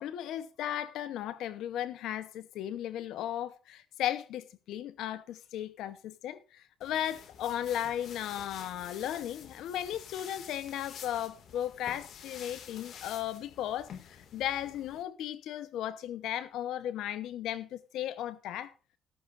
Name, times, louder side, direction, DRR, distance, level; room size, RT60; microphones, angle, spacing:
voice 1, 0.0-18.7, left 11 dB, 85° left, 0.8 m, -36 dB
sound 1, 6.8-15.0, left 8 dB, 70° left, 2.0 m, -49 dB
14.5 x 13.5 x 2.5 m
cardioid pair, 90°, 0 cm